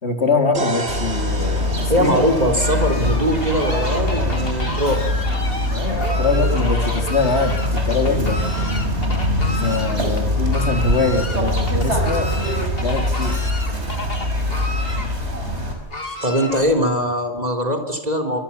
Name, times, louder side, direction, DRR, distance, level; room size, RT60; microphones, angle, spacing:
voice 1, 0.0-2.2 5.7-8.4 9.5-12.3 12.7-13.4, left 4 dB, 75° left, 5 dB, 3.4 m, -23 dB
sound 1, 0.5-4.4, right 1 dB, 65° right, 4.2 m, -32 dB
sound 2, 0.9-15.7, left 1 dB, 85° right, 6.0 m, -22 dB
voice 2, 1.9-5.1 16.2-18.4, equal, 35° right, 3 dB, 4.0 m, -21 dB
Fowl, 2.2-16.9, left 1 dB, 60° left, 3.2 m, -33 dB
25.0 x 25.0 x 7.3 m, 0.79 s
omnidirectional pair, 1.1 m